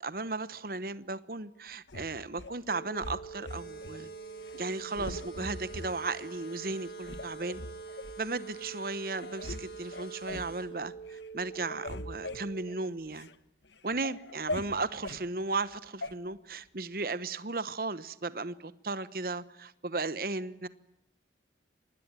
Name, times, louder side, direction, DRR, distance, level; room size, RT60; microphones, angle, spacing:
voice 1, 0.0-4.1 4.5-7.6 8.2-13.3 13.8-20.7, right 3 dB, 55° right, 1.1 m, -35 dB
sound 1, 1.9-2.5 3.0-4.0 4.4-4.6 4.9-5.9 6.4-6.5 7.0-8.2 8.8-8.9 9.2-9.6 9.9-10.5 11.0-11.3 11.5-13.3 13.7-15.2 16.0-16.1, left 2 dB, 85° left, 1.7 m, -41 dB
sound 2, 2.7-12.7, right 6 dB, 40° left, 4.8 m, -45 dB
sound 3, 3.5-10.6, left 4 dB, 65° left, 6.4 m, -53 dB
26.0 x 20.5 x 9.0 m
head